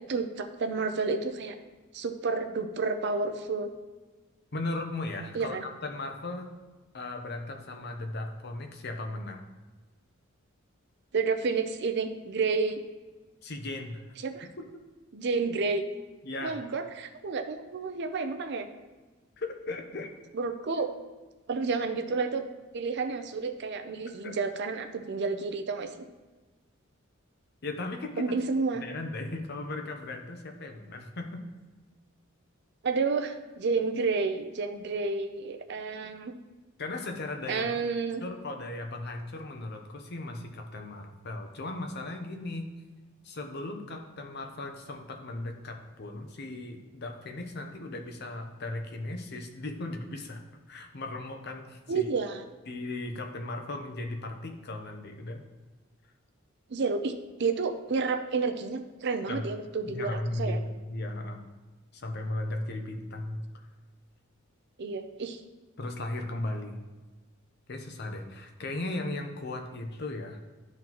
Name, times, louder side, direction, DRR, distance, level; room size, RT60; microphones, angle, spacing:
voice 1, 0.1-1.6 1.9-3.7 5.3-5.6 11.1-12.8 14.2-14.5 15.1-15.8 16.4-18.7 20.3-20.9 21.5-22.4 22.7-25.9 28.2-28.8 32.8-36.3 37.5-38.2 51.9-52.5 56.7-60.6 64.8-65.4, right 4 dB, 55° right, 8 dB, 0.5 m, -30 dB
voice 2, 4.5-6.5 6.9-9.4 13.4-14.0 16.2-16.6 19.4-20.1 24.2-24.3 27.6-28.4 28.7-31.4 36.8-37.6 38.2-42.7 43.2-50.4 50.7-52.1 52.7-55.4 59.3-59.4 59.9-61.4 61.9-63.4 65.8-66.8 67.7-70.4, left 2 dB, 50° left, 4 dB, 0.8 m, -37 dB
11.0 x 3.9 x 3.0 m, 1.3 s
head